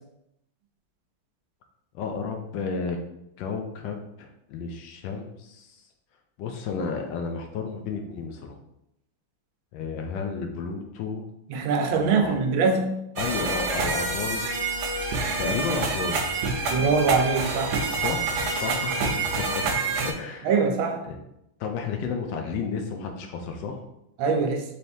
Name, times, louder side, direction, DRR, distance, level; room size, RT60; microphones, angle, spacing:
voice 1, 1.9-3.0 3.4-5.8 6.4-8.6 9.7-11.3 11.9-12.4 13.2-14.7 15.4-16.5 18.0-19.6 20.0-20.6 21.0-21.2 21.6-23.8, left 5 dB, 75° left, 4 dB, 1.2 m, -32 dB
voice 2, 11.5-13.0 16.6-17.8 20.4-21.0 24.2-24.6, right 4 dB, 85° right, 5 dB, 1.4 m, -23 dB
sound 1, 13.2-20.1, right 3 dB, 70° right, 1.0 m, -27 dB
4.2 x 3.3 x 2.7 m, 0.82 s
omnidirectional pair, 2.1 m